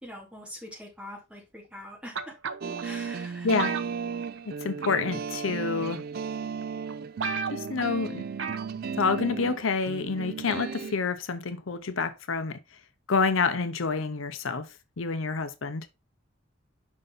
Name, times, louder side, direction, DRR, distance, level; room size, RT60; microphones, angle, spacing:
voice 1, 0.0-2.3 2.8-3.5, left 1 dB, 5° right, 3.0 m, -43 dB
sound 1, 2.1-2.8 3.6-4.5 4.8-5.1 6.0-6.1 6.6-6.7 6.9-7.0 7.2-7.9 8.4-8.7 9.0-9.1, right 5 dB, 70° right, 0.7 m, -33 dB
sound 2, 2.6-10.9, right 6 dB, 50° right, 0.3 m, -35 dB
voice 2, 3.4-3.7 4.5-6.0 7.5-8.2 9.0-12.6 13.1-14.7 15.0-15.9, left 4 dB, 80° left, 0.7 m, -28 dB
5.5 x 5.3 x 4.0 m
head